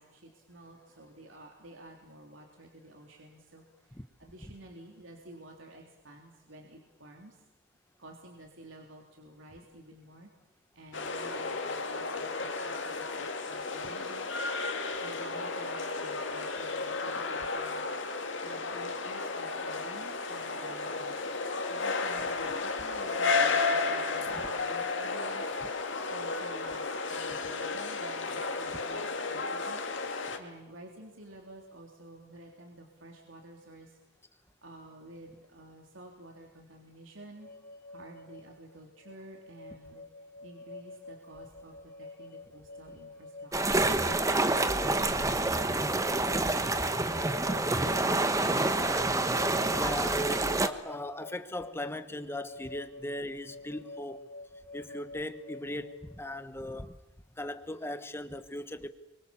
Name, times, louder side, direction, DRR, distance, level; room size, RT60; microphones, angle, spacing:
voice 1, 0.0-7.4 8.0-10.3 10.7-14.3 14.7-17.8 18.1-21.2 21.7-25.6 26.1-29.0 29.3-29.8 30.4-34.0 34.3-37.5 37.9-40.0 40.4-43.9 45.0-45.2 45.4-45.8, right 1 dB, 75° right, 1 dB, 3.5 m, -51 dB
sound 1, 10.9-30.4, left 4 dB, 65° left, 2.5 m, -33 dB
sound 2, 37.4-56.1, left 2 dB, 45° left, 4.2 m, -48 dB
sound 3, 43.5-50.7, right 2 dB, 15° right, 1.2 m, -27 dB
voice 2, 47.4-47.8 48.3-49.3 49.6-54.3 54.7-56.9 57.4-58.9, left 1 dB, 10° left, 11 dB, 1.3 m, -39 dB
30.0 x 24.0 x 7.2 m, 0.95 s
head